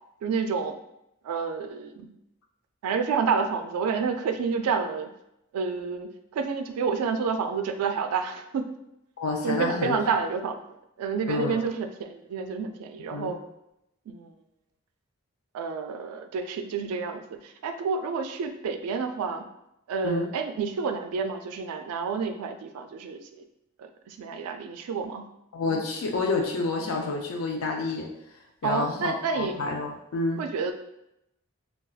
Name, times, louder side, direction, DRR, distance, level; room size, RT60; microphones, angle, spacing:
voice 1, 0.2-0.8 1.2-2.1 2.8-5.1 5.5-8.7 9.4-10.6 11.0-13.4 14.1-14.3 15.5-19.5 19.9-23.4 23.8-25.3 28.6-29.6 30.4-30.7, right 5 dB, 90° right, 11 dB, 0.3 m, -29 dB
voice 2, 9.2-10.0 11.3-11.6 13.1-13.3 20.0-20.3 25.5-28.1 28.6-30.4, left 3 dB, 70° left, 1 dB, 0.4 m, -29 dB
3.9 x 2.3 x 2.3 m, 0.83 s
head